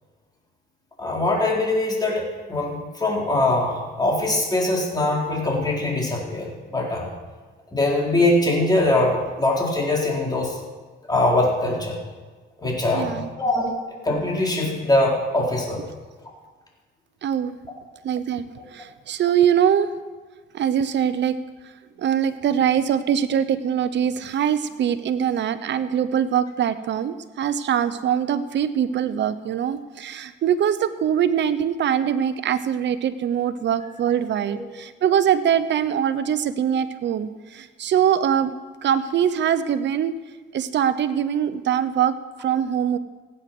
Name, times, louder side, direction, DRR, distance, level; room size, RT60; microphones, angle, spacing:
voice 1, 1.0-7.1 7.7-10.6 11.1-12.0 12.6-13.7 14.0-15.8 34.5-34.6, left 2 dB, 20° left, -3 dB, 4.2 m, -22 dB
voice 2, 12.9-13.3 13.6-13.7 17.2-17.6 18.0-20.0 20.5-21.4 22.0-38.5 38.8-40.1 40.5-43.0, right 9 dB, 65° right, 13 dB, 0.9 m, -23 dB
16.0 x 9.5 x 6.1 m, 1.4 s
cardioid pair, 90°, 20 cm